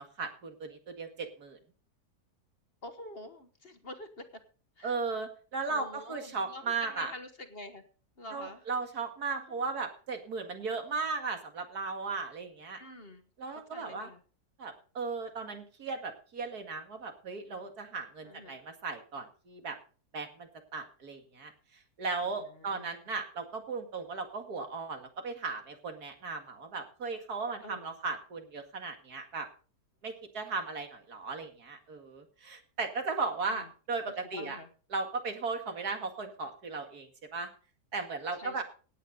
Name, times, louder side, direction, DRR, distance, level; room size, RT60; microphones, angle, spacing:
voice 1, 0.0-1.6 4.8-7.1 8.3-12.8 13.4-14.1 14.6-19.8 20.1-21.5 22.0-29.5 30.0-34.6 34.9-37.5 37.9-38.6, right 4 dB, 75° right, 5 dB, 2.5 m, -36 dB
voice 2, 2.8-4.4 4.8-4.9 5.7-7.8 8.2-8.6 12.8-13.2 13.7-14.2 18.2-18.6 22.2-23.0 27.6-27.9 33.5-33.7 34.3-34.7 38.4-38.6, left 1 dB, 40° left, 8 dB, 1.4 m, -47 dB
17.0 x 9.2 x 4.1 m, 0.39 s
omnidirectional pair, 1.7 m